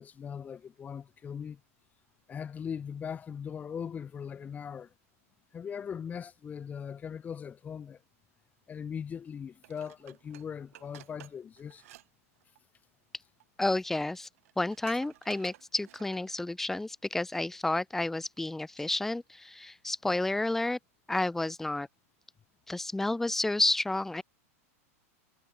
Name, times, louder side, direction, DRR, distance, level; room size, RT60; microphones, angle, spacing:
voice 1, 0.0-1.6 2.3-4.9 5.5-8.0 8.7-11.8, left 7 dB, 20° left, 1.1 m, -40 dB
Dishes pots and pans, 9.6-12.1 12.4-12.6 13.4-13.5 13.8-13.9 14.1-16.4 16.8-16.9, right 16 dB, 65° right, 6.6 m, -53 dB
voice 2, 13.6-14.3 14.6-20.8 21.1-21.9 22.7-24.2, left 2 dB, 5° left, 0.3 m, -30 dB
hypercardioid pair, 130°, 8 cm